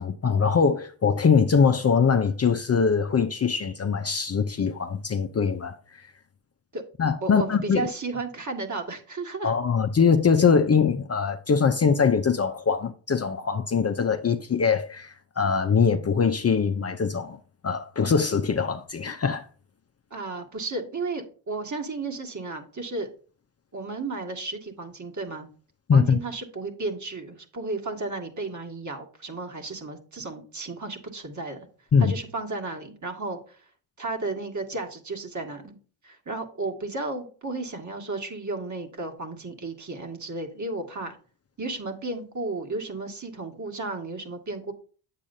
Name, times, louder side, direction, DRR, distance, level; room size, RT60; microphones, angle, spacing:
voice 1, 0.0-6.1 7.0-7.9 9.4-17.4 17.6-19.5 25.9-26.2 31.9-32.1, left 6 dB, 30° left, 0.7 m, -22 dB
voice 2, 7.2-9.5 20.1-23.1 23.7-25.5 25.9-31.7 32.0-33.6 34.0-35.8 36.0-41.2 41.6-44.7, right 3 dB, 40° right, 1.9 m, -33 dB
8.5 x 7.5 x 2.7 m
supercardioid pair, 60°, 47 cm